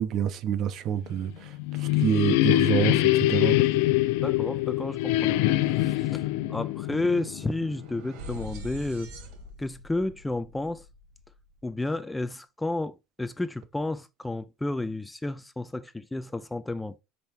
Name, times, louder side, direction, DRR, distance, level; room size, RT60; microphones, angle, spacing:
voice 1, 0.0-1.5 1.8-3.6, right 9 dB, 50° right, 0.9 m, -27 dB
sound 1, 1.3-8.0, left 16 dB, 80° left, 0.5 m, -24 dB
voice 2, 4.2-9.1 9.6-10.9 11.6-17.0, left 2 dB, 10° left, 0.4 m, -32 dB
sound 2, 5.9-11.7, equal, 75° right, 2.4 m, -45 dB
5.4 x 4.5 x 4.4 m
supercardioid pair, 130°, 0 cm